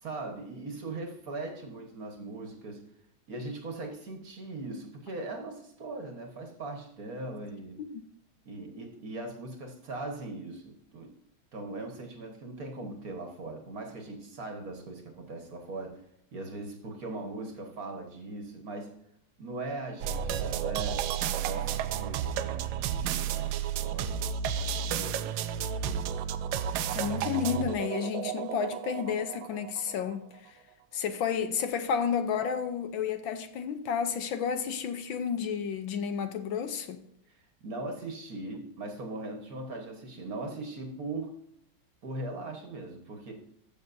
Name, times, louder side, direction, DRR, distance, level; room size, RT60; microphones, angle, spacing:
voice 1, 0.0-2.8 3.3-7.8 8.4-11.1 11.5-16.0 16.3-18.9 19.4-24.2 24.6-25.2 25.8-26.2 37.6-41.3 42.0-43.3, right 2 dB, 45° right, 1.7 m, -40 dB
sound 1, 20.0-30.2, right 8 dB, 85° right, 1.5 m, -32 dB
voice 2, 26.9-30.5 30.9-37.0, left 7 dB, 70° left, 1.5 m, -31 dB
14.0 x 6.5 x 2.6 m
omnidirectional pair, 2.3 m